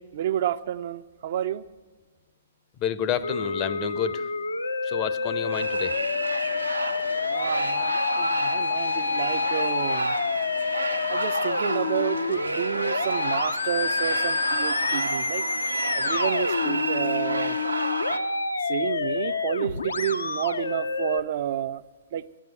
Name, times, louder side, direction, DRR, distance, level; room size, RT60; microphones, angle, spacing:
voice 1, 0.0-1.6 7.3-10.2 11.1-15.4 15.9-17.6 18.7-21.8 22.1-22.2, right 10 dB, 50° right, 12 dB, 0.4 m, -30 dB
voice 2, 2.8-4.3 4.8-6.0, left 9 dB, 30° left, 12 dB, 0.6 m, -29 dB
Musical instrument, 3.2-21.2, left 4 dB, 75° left, 0.6 m, -28 dB
sound 1, 5.5-18.2, right 2 dB, 85° right, 0.7 m, -31 dB
12.5 x 9.1 x 7.6 m, 1.4 s
figure-of-eight pair, 120°, 0 cm